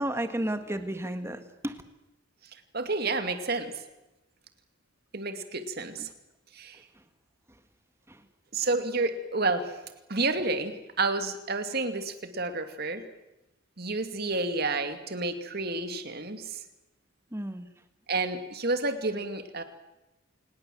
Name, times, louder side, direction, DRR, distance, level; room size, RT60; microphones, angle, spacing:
voice 1, 0.0-1.8 6.0-6.1 8.1-8.2 17.3-17.7, right 1 dB, 15° right, 9 dB, 1.6 m, -32 dB
voice 2, 2.7-3.8 5.1-6.1 6.5-6.8 8.5-9.8 10.1-13.0 13.8-16.6 18.1-19.6, right 3 dB, 50° right, 8 dB, 2.3 m, -30 dB
27.5 x 20.0 x 7.7 m, 0.96 s
head